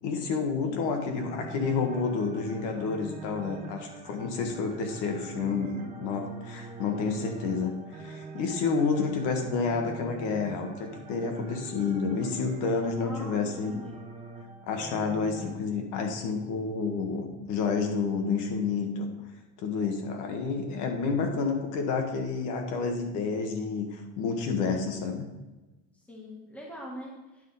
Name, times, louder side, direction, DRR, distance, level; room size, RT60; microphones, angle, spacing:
voice 1, 0.0-13.8 14.7-19.1 19.6-25.3, left 4 dB, 60° left, 3 dB, 1.4 m, -29 dB
sound 1, 1.2-15.5, right 4 dB, 20° right, 0.7 m, -44 dB
voice 2, 13.0-14.2 26.1-27.5, equal, 5° left, -3 dB, 1.4 m, -43 dB
9.4 x 5.8 x 4.0 m, 1.1 s
cardioid pair, 175°, 34 cm